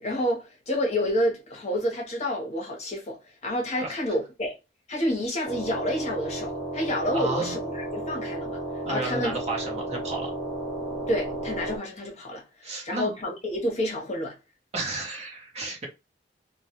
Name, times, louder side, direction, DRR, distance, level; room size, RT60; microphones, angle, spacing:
voice 1, 0.0-4.5 4.9-8.6 8.9-9.4 11.1-14.3, equal, 40° left, 0.8 m, -29 dB
sound 1, 5.4-11.8, right 1 dB, 10° right, 1.0 m, -33 dB
voice 2, 7.1-7.6 8.8-10.3 12.6-13.1 14.7-15.9, right 2 dB, 35° right, 0.7 m, -32 dB
2.2 x 2.1 x 2.8 m
head